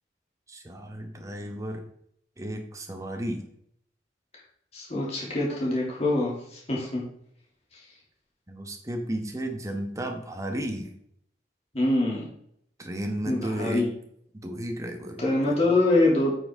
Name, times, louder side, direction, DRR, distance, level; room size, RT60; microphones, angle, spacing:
voice 1, 0.5-1.8 2.4-3.4 8.5-10.9 12.8-13.9 14.3-15.6, right 1 dB, 20° right, 4 dB, 1.1 m, -33 dB
voice 2, 4.7-7.0 11.7-12.3 13.2-13.9 15.2-16.4, left 2 dB, 35° left, -5 dB, 2.9 m, -24 dB
8.7 x 6.5 x 3.7 m, 0.71 s
head